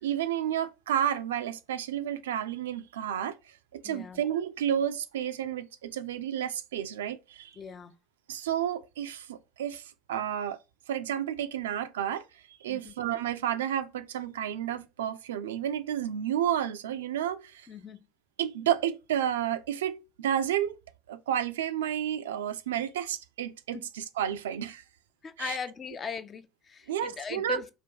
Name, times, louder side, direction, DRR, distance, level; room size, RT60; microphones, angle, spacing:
voice 1, 0.0-7.5 8.3-10.6 10.9-17.7 18.4-20.8 21.1-24.8 25.4-25.6 26.9-27.6, right 10 dB, 70° right, 0.3 m, -31 dB
voice 2, 3.8-4.2 7.6-7.9 12.7-12.9 17.7-18.1 23.7-23.9 25.2-27.7, left 6 dB, 30° left, 0.4 m, -39 dB
3.4 x 2.2 x 3.7 m
figure-of-eight pair, 65°, 0 cm